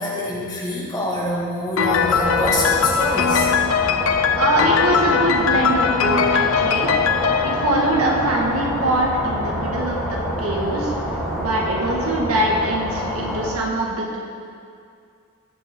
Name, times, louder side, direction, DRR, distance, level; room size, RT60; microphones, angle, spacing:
voice 1, 0.0-3.5, left 1 dB, 15° left, -6 dB, 2.1 m, -25 dB
Piano, 1.8-8.6, left 7 dB, 65° left, 0.5 m, -21 dB
sound 1, 1.9-13.5, equal, ahead, 2.4 m, -27 dB
voice 2, 4.4-6.9 7.4-10.0 10.4-10.9 11.4-14.2, right 1 dB, 80° right, -2 dB, 1.9 m, -22 dB
19.0 x 6.4 x 3.8 m, 2.3 s
head